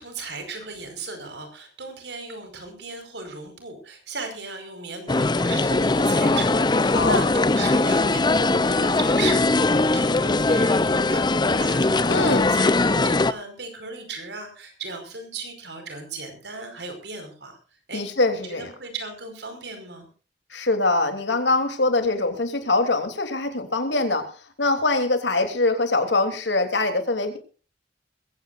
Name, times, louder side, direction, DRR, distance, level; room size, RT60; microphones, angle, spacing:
voice 1, 0.0-17.6 17.9-18.0 18.5-20.1, right 4 dB, 70° right, 6 dB, 5.2 m, -36 dB
sound 1, 5.1-13.3, left 2 dB, 25° left, 0.6 m, -20 dB
voice 2, 12.1-12.6 17.9-18.7 20.5-24.3 24.6-27.4, left 2 dB, 90° left, 6 dB, 3.3 m, -23 dB
21.5 x 16.5 x 2.6 m, 0.35 s
head